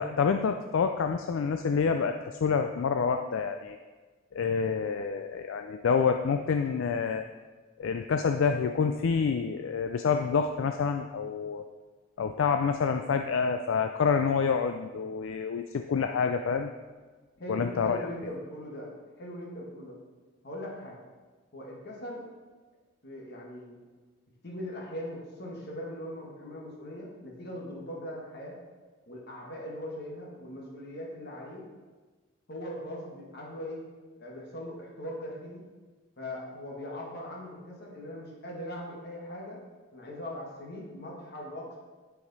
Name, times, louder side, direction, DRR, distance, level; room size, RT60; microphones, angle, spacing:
voice 1, 0.0-3.8 4.3-7.3 7.8-11.6 12.2-16.7 17.5-18.0, left 5 dB, 65° left, 7 dB, 0.3 m, -27 dB
voice 2, 17.4-18.9 19.2-20.0 20.4-21.0 21.5-22.2 23.0-23.8 24.4-28.6 29.1-31.6 32.5-33.8 34.2-35.6 36.2-39.6 39.9-41.8, left 1 dB, 50° left, -2 dB, 1.4 m, -40 dB
10.0 x 4.9 x 4.0 m, 1.3 s
head